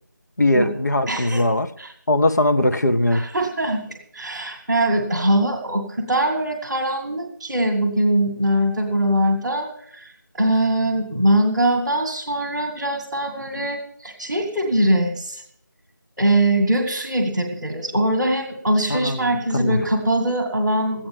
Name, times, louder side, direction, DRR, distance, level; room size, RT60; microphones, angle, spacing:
voice 1, 0.4-1.7 2.1-3.2 18.9-19.9, left 1 dB, 60° left, 7 dB, 0.8 m, -20 dB
voice 2, 1.1-1.4 1.8-1.9 3.1-15.4 16.2-21.1, right 1 dB, ahead, -11 dB, 1.0 m, -22 dB
13.0 x 8.8 x 6.9 m, 0.67 s
figure-of-eight pair, 165°, 11 cm